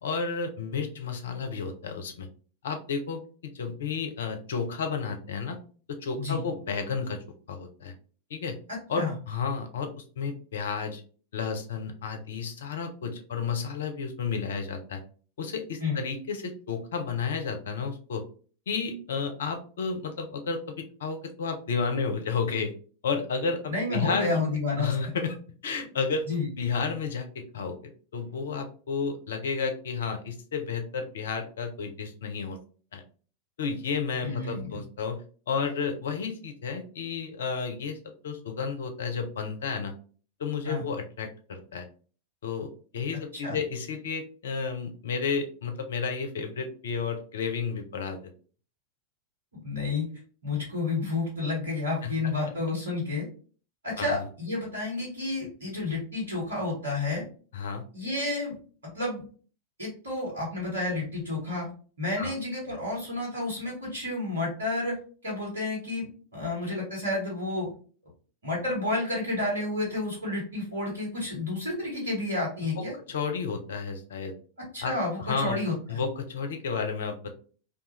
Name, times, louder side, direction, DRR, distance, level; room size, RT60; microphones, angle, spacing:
voice 1, 0.0-2.3 2.6-3.2 3.5-5.6 5.9-7.2 7.5-7.9 8.3-8.6 8.9-9.9 10.2-11.0 11.3-15.0 15.4-18.2 18.7-22.7 23.0-24.4 24.8-26.3 26.6-32.6 32.9-33.0 33.6-35.2 35.5-38.0 38.2-39.9 40.4-41.9 42.4-48.2 52.0-52.1 54.0-54.2 57.5-57.8 62.2-62.3 72.8-74.3 74.8-74.9 75.3-75.6 75.9-77.3, left 5 dB, 65° left, 6 dB, 0.5 m, -32 dB
voice 2, 23.7-25.1 26.3-26.5 34.2-34.8 40.6-40.8 43.3-43.6 49.6-50.1 50.4-53.3 53.8-57.2 57.9-58.6 58.9-59.2 59.8-61.7 62.0-65.0 65.2-67.7 68.4-72.9 74.7-76.0, left 2 dB, 70° right, -3 dB, 1.2 m, -30 dB
2.3 x 2.3 x 2.9 m, 0.41 s
figure-of-eight pair, 90°, 0 cm